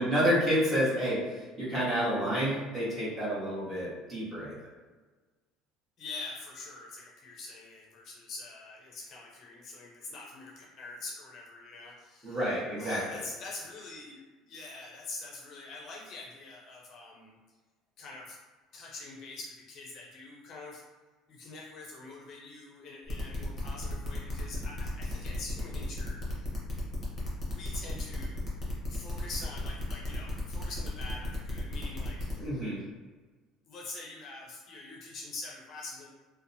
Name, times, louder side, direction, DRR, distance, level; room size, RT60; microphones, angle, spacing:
voice 1, 0.0-4.5 12.2-13.0 32.4-32.8, equal, 10° right, -9 dB, 1.3 m, -29 dB
voice 2, 6.0-12.4 12.8-17.4 18.0-18.4 18.7-20.8 21.3-26.5 27.4-28.5 28.9-32.5 33.7-36.1, left 3 dB, 50° left, -2 dB, 0.5 m, -44 dB
sound 1, 23.1-32.5, left 1 dB, 25° left, 0.9 m, -36 dB
2.8 x 2.1 x 2.6 m, 1.3 s
cardioid pair, 135°, 0 cm